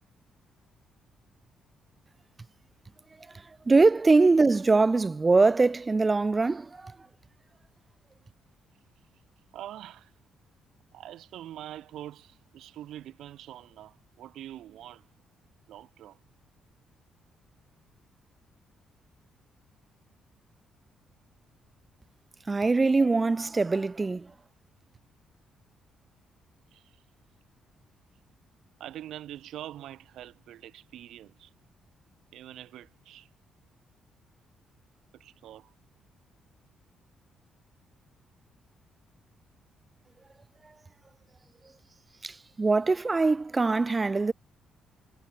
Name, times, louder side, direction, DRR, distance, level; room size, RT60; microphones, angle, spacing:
voice 1, 3.3-7.0 22.5-24.3 42.2-44.3, right 3 dB, 20° right, 0.3 m, -23 dB
voice 2, 9.5-10.1 10.9-15.1 15.7-16.2 23.1-23.3 26.7-27.0 28.8-31.5 32.3-33.3 35.1-35.7, right 12 dB, 75° right, 0.9 m, -44 dB
cardioid pair, 145°, 0 cm